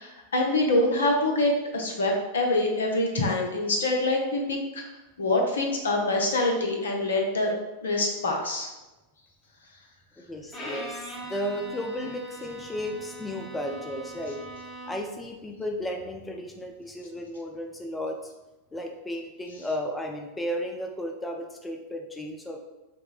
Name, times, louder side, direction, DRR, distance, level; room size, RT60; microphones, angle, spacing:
voice 1, 0.0-4.8 5.2-7.5 7.8-8.7, left 2 dB, 65° left, 1 dB, 0.6 m, -25 dB
voice 2, 10.2-14.5 14.9-18.3 18.7-22.6, equal, 10° left, 3 dB, 0.3 m, -34 dB
Bowed string instrument, 10.5-15.2, right 1 dB, 25° left, 0.7 m, -41 dB
5.8 x 2.1 x 2.4 m, 1.1 s
figure-of-eight pair, 90°, 0 cm